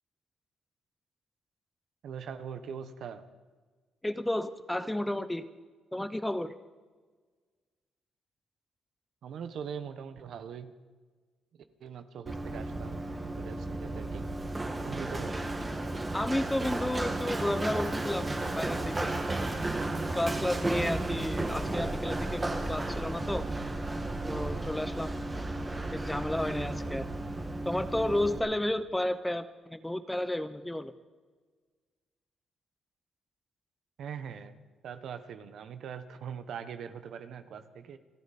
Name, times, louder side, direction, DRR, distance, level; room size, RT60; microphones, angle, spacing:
voice 1, 2.0-3.2 9.2-10.8 11.8-14.3 14.8-15.3 26.1-26.5 34.0-34.6 34.8-38.0, right 7 dB, 70° right, 10 dB, 1.1 m, -42 dB
voice 2, 4.0-5.4 5.9-6.5 16.1-19.1 20.1-23.4 24.2-25.2 25.9-27.0 27.7-30.9, left 1 dB, 10° left, 12 dB, 0.7 m, -32 dB
Run, 12.3-28.4, right 2 dB, 20° right, 1.8 m, -33 dB
29.0 x 9.8 x 4.3 m, 1.4 s
cardioid pair, 90°, 0 cm